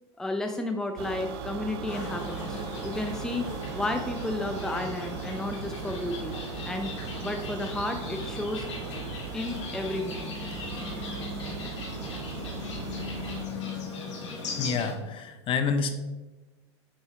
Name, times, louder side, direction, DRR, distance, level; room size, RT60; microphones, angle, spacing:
voice 1, 0.2-2.6 2.8-3.5 3.7-6.4 6.6-6.9 7.2-8.6 9.3-10.4, left 2 dB, 5° left, 4 dB, 0.6 m, -32 dB
sound 1, 1.0-13.4, right 8 dB, 60° right, 0.8 m, -38 dB
sound 2, 1.9-14.9, left 3 dB, 80° left, 2.6 m, -38 dB
voice 2, 14.6-15.9, left 5 dB, 35° left, 8 dB, 1.0 m, -28 dB
8.8 x 5.5 x 3.4 m, 1.1 s
hypercardioid pair, 105°, 15 cm